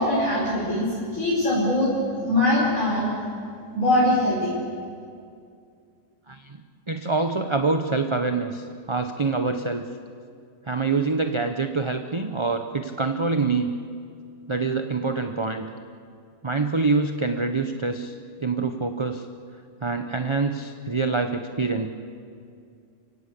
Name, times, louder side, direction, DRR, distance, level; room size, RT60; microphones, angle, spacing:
voice 1, 0.0-1.9 2.2-3.1 3.7-4.6, left 1 dB, 50° left, -8 dB, 5.6 m, -22 dB
voice 2, 6.3-6.6 6.9-9.9 10.6-13.7 14.5-15.7 16.4-18.1 18.4-19.3 19.8-21.9, right 4 dB, 30° right, 6 dB, 0.6 m, -25 dB
29.0 x 16.5 x 8.5 m, 2.4 s
omnidirectional pair, 1.8 m